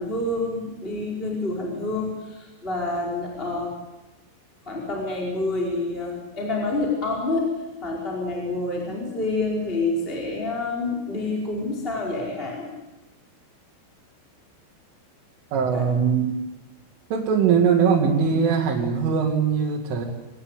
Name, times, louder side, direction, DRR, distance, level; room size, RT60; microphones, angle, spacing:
voice 1, 0.0-3.7 4.6-7.5 7.8-12.7 15.7-15.9, left 2 dB, 10° left, -3 dB, 4.7 m, -28 dB
voice 2, 15.5-16.4 17.1-20.1, right 6 dB, 85° right, -2 dB, 4.9 m, -21 dB
24.5 x 19.5 x 9.9 m, 1.0 s
omnidirectional pair, 5.5 m